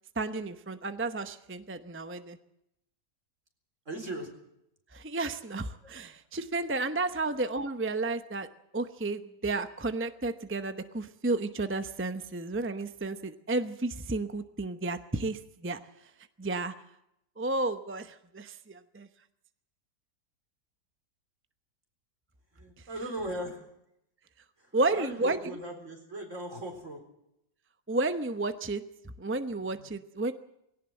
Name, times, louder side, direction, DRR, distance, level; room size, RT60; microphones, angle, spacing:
voice 1, 0.2-2.4 4.9-8.5 8.7-15.8 16.4-16.7 17.4-19.1 24.7-25.4 27.9-30.3, right 2 dB, 15° right, 9 dB, 0.4 m, -32 dB
voice 2, 3.9-4.3 5.8-5.9 22.5-23.7 24.6-27.0 29.6-29.9, right 1 dB, 45° right, 4 dB, 4.4 m, -39 dB
20.0 x 17.5 x 7.8 m, 0.80 s
omnidirectional pair, 1.9 m